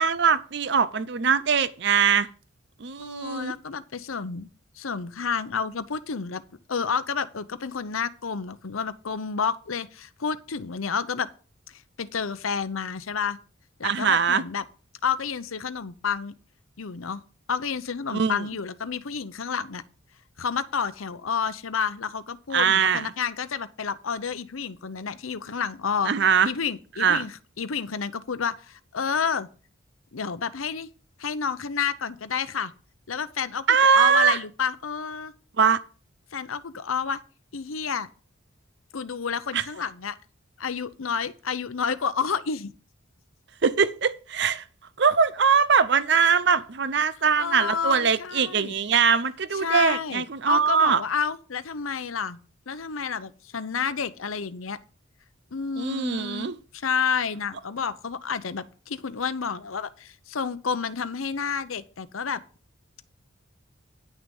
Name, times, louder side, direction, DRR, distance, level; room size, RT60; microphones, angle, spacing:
voice 1, 0.0-2.3 2.8-3.5 13.8-14.4 18.1-18.4 22.5-23.1 26.1-26.5 27.0-27.2 33.7-34.4 35.6-35.8 39.5-39.6 43.6-44.6 45.0-51.0 55.8-56.5, right 6 dB, 55° right, 0.6 m, -22 dB
voice 2, 3.0-4.5 4.8-6.4 6.7-11.3 11.7-13.4 13.8-14.6 15.0-16.3 16.8-17.2 17.5-19.8 20.4-26.1 26.4-29.5 30.1-30.9 31.2-32.7 33.1-33.6 33.9-35.3 36.3-37.2 37.5-38.1 38.9-40.1 40.6-42.7 47.3-48.8 49.5-52.4 52.7-54.8 55.5-62.4, left 6 dB, 85° left, 0.8 m, -30 dB
10.5 x 6.2 x 5.4 m
head